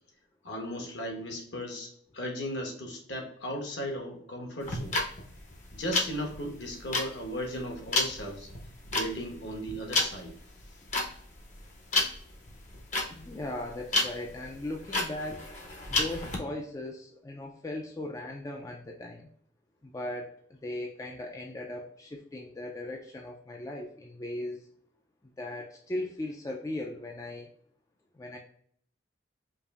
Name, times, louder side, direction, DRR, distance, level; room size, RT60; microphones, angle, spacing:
voice 1, 0.4-5.0 5.7-8.5 8.9-10.3, equal, 60° left, 2 dB, 1.0 m, -36 dB
sound 1, 4.6-16.4, left 2 dB, 40° left, 0.7 m, -31 dB
voice 2, 13.1-15.5 15.9-19.3 19.8-24.7 25.4-27.5 28.1-28.4, left 1 dB, 15° left, 1 dB, 0.3 m, -38 dB
5.1 x 2.6 x 2.4 m, 0.62 s
head